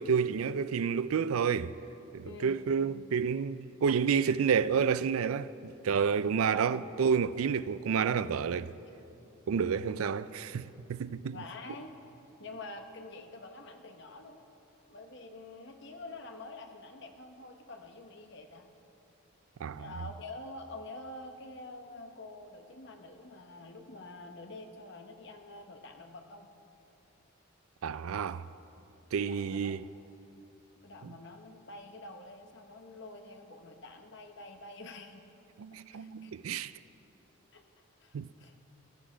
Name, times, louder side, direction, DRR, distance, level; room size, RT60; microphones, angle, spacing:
voice 1, 0.0-1.7 2.1-8.7 9.5-11.4 19.6-19.8 27.8-28.5 29.1-29.8 31.0-31.1 35.6-36.7 38.1-38.3, right 6 dB, 80° right, 0.4 m, -30 dB
voice 2, 2.2-2.6 6.5-6.9 11.3-12.0 12.4-14.4 14.9-18.7 19.8-26.5 29.2-29.7 30.8-35.2 35.9-36.3 37.5-37.6 38.0-38.5, left 2 dB, 55° left, 1.0 m, -47 dB
15.0 x 13.0 x 5.0 m
head